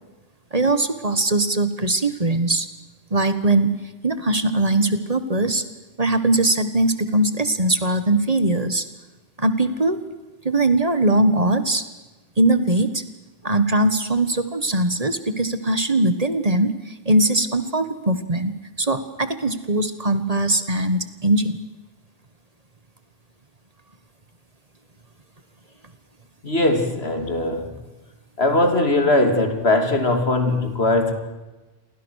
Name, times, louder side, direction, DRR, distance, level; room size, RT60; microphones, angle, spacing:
voice 1, 0.5-2.7 3.1-3.8 4.0-5.6 6.0-8.9 9.4-10.0 10.5-11.8 12.4-13.0 13.4-18.5 18.8-21.6, right 2 dB, 35° right, 11 dB, 1.6 m, -20 dB
voice 2, 26.4-27.8 28.4-31.1, left 2 dB, 75° left, 6 dB, 3.4 m, -20 dB
29.5 x 23.5 x 6.5 m, 1.1 s
omnidirectional pair, 1.1 m